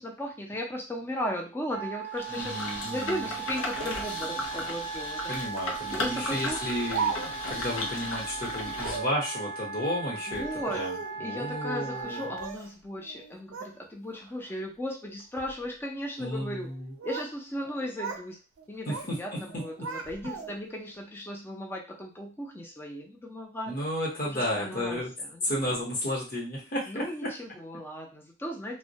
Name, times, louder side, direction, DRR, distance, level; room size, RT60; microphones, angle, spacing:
voice 1, 0.0-5.2 5.9-6.6 10.3-10.8 11.2-16.7 17.0-18.4 18.7-23.9 24.3-25.6 26.9-28.8, left 1 dB, 10° left, 1 dB, 0.4 m, -36 dB
Wind instrument woodwind instrument, 1.7-12.5, right 6 dB, 45° right, 0.7 m, -38 dB
sound 1, 2.2-9.0, left 2 dB, 80° left, 0.5 m, -36 dB
voice 2, 2.3-3.2 5.3-7.1 7.5-10.4 10.7-12.2 16.2-16.9 18.9-19.9 23.7-25.1 25.4-27.3, equal, 45° left, -3 dB, 0.8 m, -32 dB
Speech, 6.5-7.6 8.7-9.2 10.2-11.2 11.9-12.7 13.0-13.8 14.1-14.5 15.2-15.5 16.6-17.4 17.6-18.3 18.6-19.2 19.5-20.7, right 6 dB, 90° right, 0.4 m, -37 dB
2.2 x 2.1 x 2.7 m, 0.31 s
head